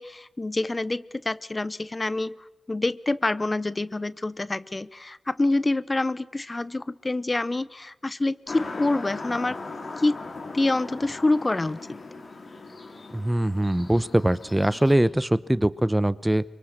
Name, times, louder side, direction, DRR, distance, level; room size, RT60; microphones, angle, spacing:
voice 1, 0.0-2.4 2.7-9.6 10.0-10.2 10.5-12.0, left 2 dB, 30° left, 17 dB, 0.9 m, -26 dB
sound 1, 8.5-15.0, left 3 dB, 55° left, 4.5 m, -39 dB
voice 2, 13.1-16.4, right 1 dB, 15° right, 17 dB, 0.9 m, -22 dB
24.0 x 23.5 x 6.7 m, 1.0 s
supercardioid pair, 40°, 0 cm